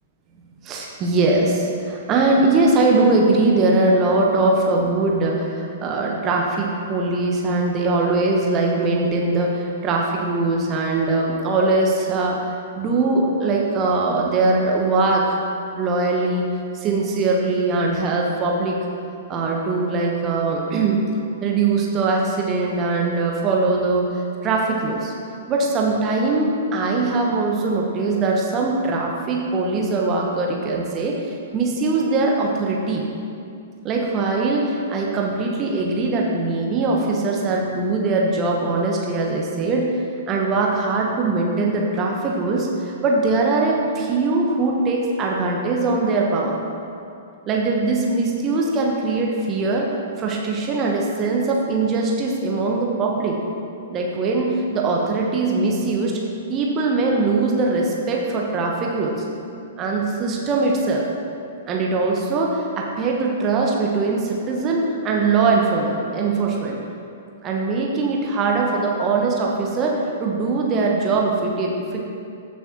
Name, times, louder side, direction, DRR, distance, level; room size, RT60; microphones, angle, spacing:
voice 1, 0.6-15.4 15.7-16.5 16.7-18.8 19.3-21.0 21.4-25.1 25.5-33.1 33.8-39.9 40.3-46.6 47.5-49.9 50.2-53.4 53.9-56.2 56.5-59.2 59.8-61.1 61.7-66.8 67.4-72.1, right 3 dB, 25° right, -1 dB, 1.1 m, -21 dB
14.0 x 6.9 x 3.0 m, 2.5 s
figure-of-eight pair, 110°, 0 cm